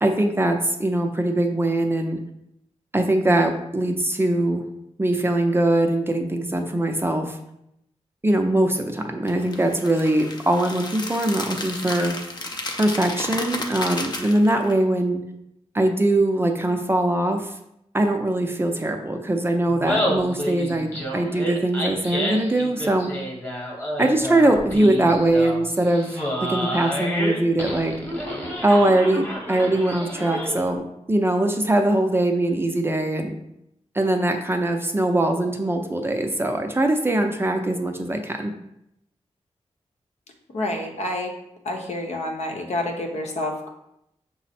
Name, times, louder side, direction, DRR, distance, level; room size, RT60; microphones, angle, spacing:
voice 1, 0.0-2.2 2.9-4.6 5.0-7.4 8.2-12.1 12.8-15.2 15.7-17.5 17.9-23.1 24.0-28.0 28.6-30.8 31.1-33.3 33.9-38.5, right 1 dB, 20° right, 4 dB, 0.5 m, -22 dB
sound 1, 9.3-14.7, left 2 dB, 35° left, 0.6 m, -32 dB
Laughter, 19.7-30.7, equal, 15° left, 1.1 m, -29 dB
voice 2, 40.5-41.3 41.6-43.7, left 1 dB, 70° left, 1 dB, 0.8 m, -28 dB
6.0 x 2.0 x 4.2 m, 0.80 s
wide cardioid pair, 90°, 12 cm